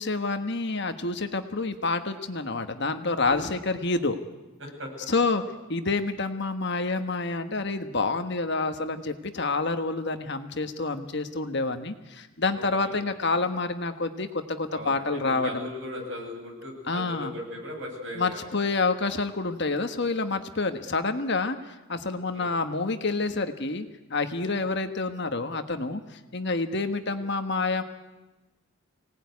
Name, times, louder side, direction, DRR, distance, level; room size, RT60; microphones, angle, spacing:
voice 1, 0.0-4.2 5.1-5.4 5.7-15.7 16.9-17.3 18.2-21.6 21.9-27.8, left 3 dB, 55° left, 8 dB, 1.4 m, -28 dB
voice 2, 12.5-13.0 14.7-18.5 22.3-22.5 24.5-24.7 27.1-27.2, left 1 dB, 60° right, 1 dB, 7.8 m, -38 dB
25.0 x 18.5 x 9.6 m, 1.1 s
head